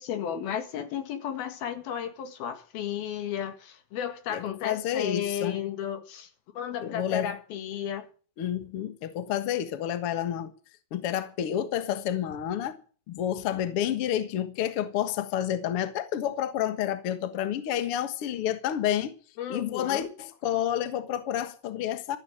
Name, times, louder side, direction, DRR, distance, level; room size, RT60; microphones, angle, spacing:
voice 1, 0.0-6.3 6.6-8.1 19.4-20.1, left 9 dB, 90° left, 3.8 m, -33 dB
voice 2, 4.3-5.6 6.8-7.4 8.4-10.5 10.9-12.8 13.1-19.1 19.5-22.2, left 10 dB, 55° left, 1.8 m, -29 dB
14.0 x 9.5 x 8.6 m
omnidirectional pair, 4.2 m